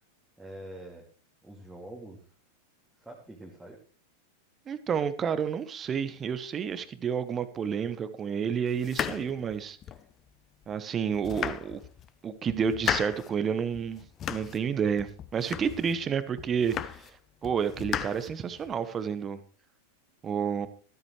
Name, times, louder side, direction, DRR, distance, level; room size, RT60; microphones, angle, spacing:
voice 1, 0.4-1.1 1.4-2.3 3.0-3.8 15.5-15.8, right 1 dB, 5° right, -2 dB, 2.5 m, -45 dB
voice 2, 4.7-9.8 10.7-11.8 12.2-14.0 14.3-17.1 17.4-19.4 20.2-20.7, right 7 dB, 25° right, 13 dB, 1.2 m, -30 dB
sound 1, 8.8-10.1 10.6-10.7 11.1-12.1 12.5-13.3 13.7-14.7 15.0-16.0 16.4-17.2 17.4-18.7, left 9 dB, 30° left, 0.6 m, -35 dB
14.0 x 13.0 x 3.2 m, 0.37 s
figure-of-eight pair, 90°, 0 cm